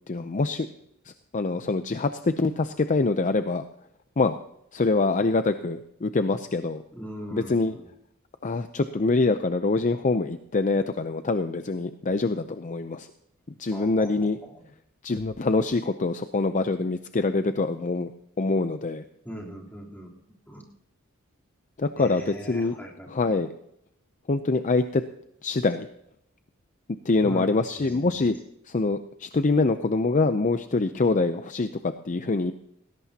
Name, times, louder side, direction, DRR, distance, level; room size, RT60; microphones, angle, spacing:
voice 1, 0.1-0.7 1.3-3.6 4.2-4.4 4.7-6.8 7.3-7.7 8.4-13.1 13.6-14.4 15.0-18.1 18.4-19.0 21.8-22.7 23.1-23.5 24.3-25.0 25.4-25.9 27.0-28.4 28.7-32.5, left 3 dB, 35° left, 9 dB, 0.5 m, -25 dB
voice 2, 6.9-7.8 13.7-14.1 19.3-20.1 20.5-20.6 22.0-23.3 27.2-27.4 27.8-28.2, equal, 10° left, -3 dB, 3.5 m, -39 dB
19.5 x 17.0 x 2.9 m, 0.75 s
head